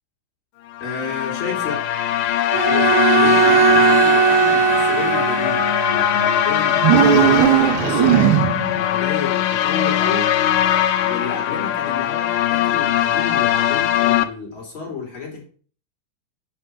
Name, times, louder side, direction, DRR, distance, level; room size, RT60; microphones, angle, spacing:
sound 1, 0.7-14.3, left 11 dB, 80° left, 1.2 m, -20 dB
voice 1, 0.8-1.8 2.6-10.4 11.0-15.4, left 5 dB, 40° left, 0 dB, 4.2 m, -31 dB
Bowed string instrument, 2.5-6.0, right 7 dB, 30° right, 3.9 m, -18 dB
sound 2, 6.8-8.8, right 10 dB, 90° right, 2.2 m, -16 dB
6.8 x 6.7 x 7.7 m, 0.42 s
omnidirectional pair, 3.4 m